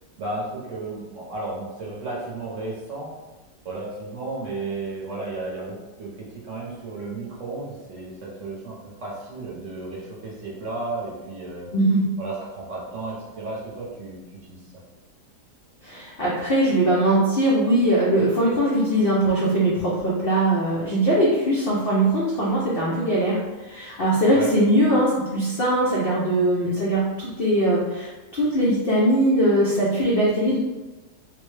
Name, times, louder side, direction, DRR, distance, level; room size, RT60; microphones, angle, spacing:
voice 1, 0.2-3.1 3.6-11.7 12.2-14.2 14.5-14.6 24.3-24.5, right 2 dB, 60° right, -4 dB, 0.9 m, -33 dB
voice 2, 11.7-12.0 15.8-30.6, right 1 dB, 75° left, -6 dB, 0.5 m, -21 dB
3.8 x 2.1 x 3.1 m, 1.1 s
omnidirectional pair, 1.8 m